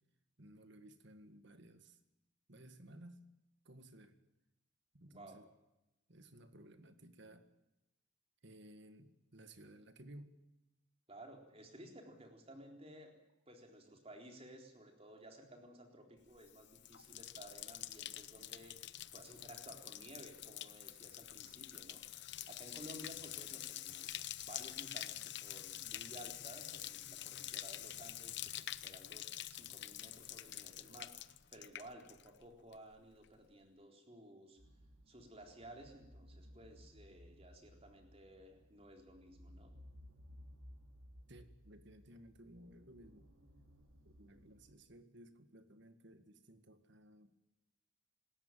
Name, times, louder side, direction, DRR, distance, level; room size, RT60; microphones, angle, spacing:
voice 1, 0.4-2.0 2.5-3.2 3.7-4.2 4.9-5.5 6.1-7.5 8.4-10.4 41.3-43.3 44.1-47.3, right 1 dB, 55° right, 9 dB, 1.9 m, -57 dB
voice 2, 5.1-5.4 11.1-13.1 13.5-34.6 35.1-39.7, right 1 dB, 30° right, 3 dB, 3.9 m, -56 dB
Bathtub (filling or washing), 16.4-32.5 32.7-33.3, left 13 dB, 55° left, 0.9 m, -47 dB
sound 1, 34.6-44.8, equal, 90° right, 4.8 m, -60 dB
26.5 x 13.5 x 9.2 m, 0.94 s
head